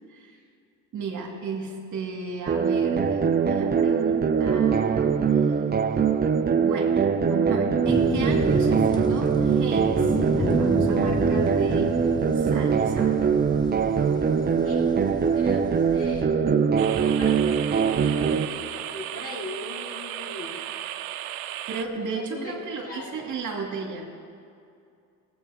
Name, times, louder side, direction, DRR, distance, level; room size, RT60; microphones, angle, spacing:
voice 1, 0.9-5.3 6.5-11.9 12.3-13.2 21.7-24.1, right 5 dB, 45° right, 1 dB, 2.3 m, -33 dB
sound 1, 2.5-18.5, right 6 dB, 25° right, 0.7 m, -22 dB
sound 2, 7.8-16.2, left 2 dB, 10° left, 0.7 m, -32 dB
voice 2, 14.6-16.5 17.0-20.6 21.9-23.3, left 2 dB, 35° left, -1 dB, 2.5 m, -39 dB
sound 3, 16.8-21.9, right 12 dB, 85° right, 0.7 m, -35 dB
17.5 x 8.4 x 5.0 m, 2.5 s
supercardioid pair, 90°, 41 cm